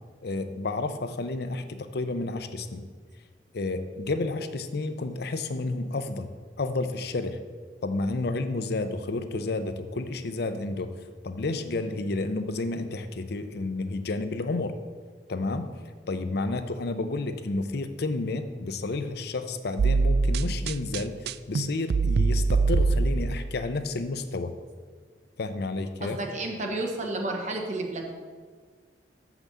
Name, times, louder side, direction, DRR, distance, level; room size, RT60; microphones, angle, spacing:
voice 1, 0.2-2.9 3.5-6.3 6.6-7.4 7.8-11.0 11.2-14.7 15.3-15.7 16.1-24.5 25.4-26.2, left 2 dB, 60° left, 9 dB, 0.6 m, -31 dB
sound 1, 19.8-23.5, right 4 dB, 60° right, 0.3 m, -23 dB
voice 2, 26.0-28.1, right 2 dB, 45° right, 1 dB, 1.3 m, -31 dB
7.3 x 5.9 x 6.9 m, 1.6 s
head